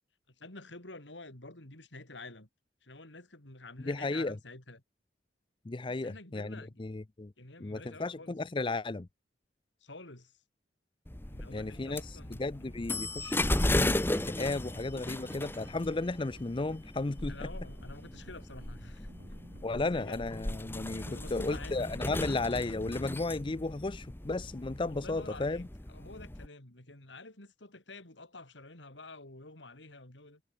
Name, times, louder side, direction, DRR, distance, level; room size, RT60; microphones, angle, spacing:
voice 1, 0.3-2.5 2.8-4.8 6.0-6.8 7.4-8.4 9.8-10.4 11.3-12.8 17.3-20.2 21.0-21.9 24.9-30.4, left 2 dB, 80° left, 4.4 m, -49 dB
voice 2, 3.9-4.4 5.7-7.3 7.6-9.1 11.5-13.4 13.7-17.5 19.6-21.0 21.3-25.6, left 2 dB, 30° left, 0.5 m, -34 dB
sound 1, 11.1-26.5, left 1 dB, 10° left, 0.9 m, -36 dB
sound 2, 13.3-23.2, right 1 dB, 85° right, 2.1 m, -56 dB
head